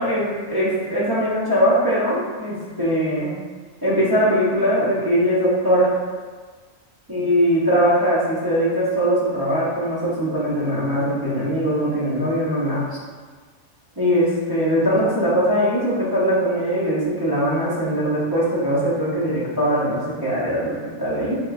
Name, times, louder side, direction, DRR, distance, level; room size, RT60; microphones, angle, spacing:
voice 1, 0.0-3.3 3.8-5.9 7.1-12.9 14.0-21.4, equal, 25° right, -11 dB, 0.6 m, -21 dB
3.5 x 2.8 x 2.4 m, 1.5 s
omnidirectional pair, 1.3 m